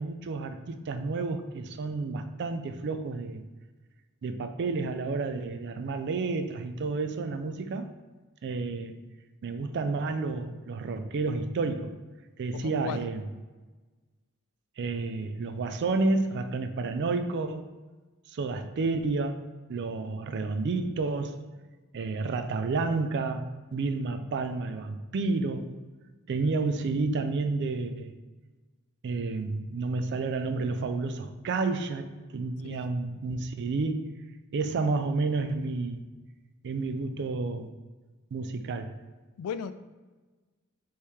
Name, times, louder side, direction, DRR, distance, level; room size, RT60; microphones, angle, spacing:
voice 1, 0.0-3.4 4.2-7.9 8.4-8.9 9.4-11.9 12.4-13.3 14.8-17.7 18.3-19.4 19.7-21.4 21.9-25.7 26.3-28.2 29.0-34.1 34.5-36.0 36.6-37.7 38.3-39.0, right 3 dB, 50° right, 8 dB, 0.4 m, -30 dB
voice 2, 12.5-13.0 32.6-32.9 39.4-39.7, left 7 dB, 85° left, 15 dB, 0.3 m, -36 dB
4.5 x 3.1 x 3.4 m, 1.3 s
head